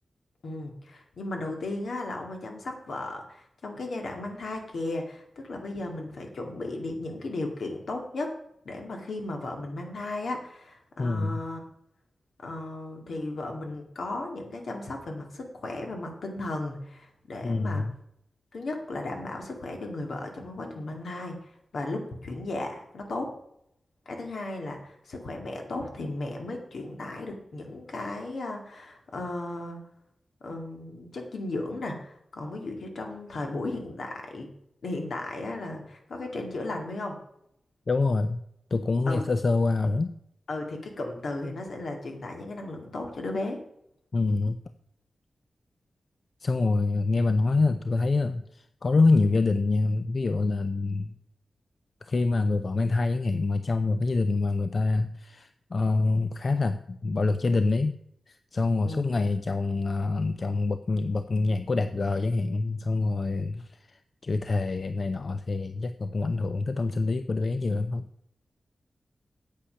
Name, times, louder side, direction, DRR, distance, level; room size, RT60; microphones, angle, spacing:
voice 1, 0.4-8.3 8.6-11.6 12.4-17.9 18.5-23.3 24.1-29.8 30.4-34.5 34.8-37.2 39.1-39.3 40.5-43.6 58.8-59.2, left 2 dB, 75° left, 3 dB, 2.2 m, -35 dB
voice 2, 11.0-11.4 17.4-17.9 37.9-38.4 38.7-40.1 44.1-44.6 46.4-51.1 52.0-58.0 58.3-68.1, left 3 dB, 50° left, 10 dB, 0.5 m, -26 dB
8.6 x 8.5 x 5.7 m, 0.75 s
wide cardioid pair, 105°, 0 cm